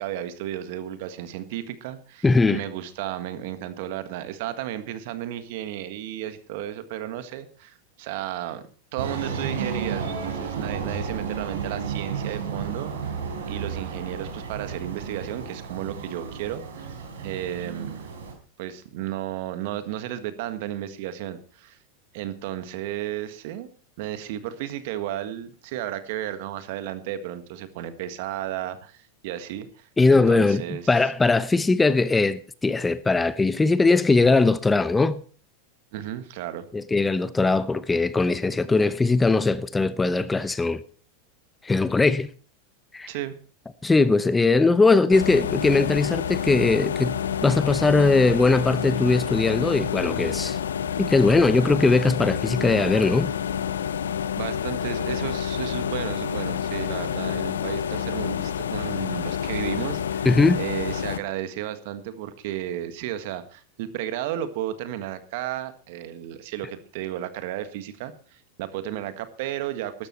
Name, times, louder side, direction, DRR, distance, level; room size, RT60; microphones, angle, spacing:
voice 1, 0.0-8.6 8.9-16.9 17.2-18.1 18.6-21.8 22.1-23.7 24.0-30.9 35.9-36.7 43.1-43.4 54.3-60.3 60.6-70.1, right 12 dB, 65° right, 1.6 m, -33 dB
voice 2, 2.2-2.6 30.0-35.2 36.7-40.8 41.6-42.3 42.9-43.1 43.8-47.2 47.4-50.6 51.0-53.3 60.2-60.6, left 3 dB, 15° left, 0.8 m, -20 dB
sound 1, 9.0-18.3, right 6 dB, 80° right, 4.6 m, -32 dB
sound 2, 45.1-61.2, left 8 dB, 85° left, 0.8 m, -28 dB
12.5 x 12.5 x 4.4 m
hypercardioid pair, 105°, 0 cm